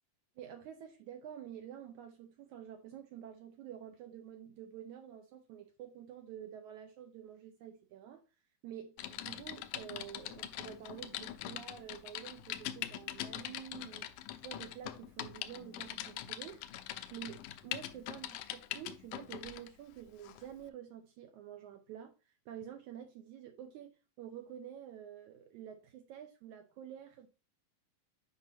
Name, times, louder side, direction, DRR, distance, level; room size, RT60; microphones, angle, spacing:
voice 1, 0.4-8.2 8.6-16.6 17.1-27.3, right 10 dB, 75° right, 1.9 m, -49 dB
Typing, 9.0-19.7 20.2-20.4, left 13 dB, 80° left, 2.0 m, -43 dB
8.1 x 5.4 x 2.6 m
omnidirectional pair, 3.9 m